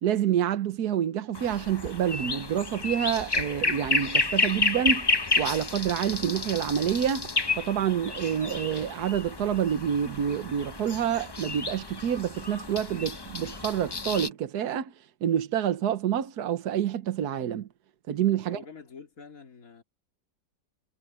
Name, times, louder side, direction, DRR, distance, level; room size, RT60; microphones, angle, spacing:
voice 1, 0.0-7.3 7.6-14.9 15.2-17.7 18.1-18.6, right 9 dB, 75° right, 1.5 m, -28 dB
sound 1, 1.3-14.3, left 3 dB, 25° left, 0.5 m, -31 dB
sound 2, 1.8-2.1 2.4-4.0 4.5-5.6 5.8-6.2 6.7-7.6, right 3 dB, 55° right, 3.7 m, -45 dB
voice 2, 18.4-19.8, left 5 dB, 55° left, 3.0 m, -46 dB
omnidirectional pair, 1.7 m